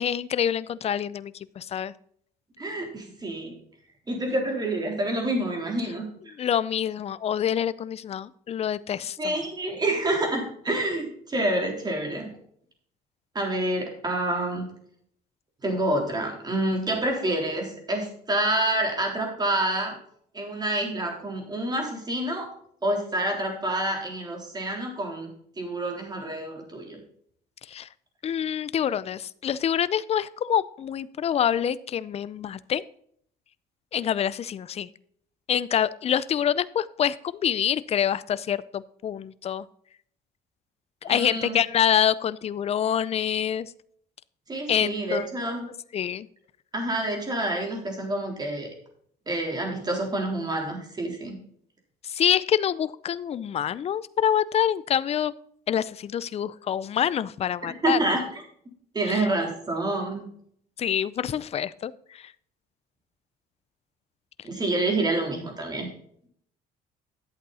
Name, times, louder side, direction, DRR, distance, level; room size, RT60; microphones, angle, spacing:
voice 1, 0.0-1.9 6.4-9.3 27.7-27.9 28.2-32.8 33.9-34.9 35.5-37.2 37.4-39.6 41.0-43.7 44.7-45.3 45.9-46.3 52.0-55.3 55.7-58.0 59.1-59.2 60.8-62.2, left 9 dB, 40° left, 17 dB, 0.5 m, -26 dB
voice 2, 2.6-3.5 4.1-6.3 9.2-12.3 13.3-14.7 15.6-20.0 20.3-22.5 22.8-25.3 25.6-27.0 41.0-41.6 44.5-45.6 46.7-48.7 49.3-51.4 57.6-58.4 58.9-60.2 64.4-65.9, right 1 dB, 25° right, 1 dB, 3.8 m, -28 dB
11.5 x 8.2 x 4.2 m, 0.64 s
cardioid pair, 110°, 17 cm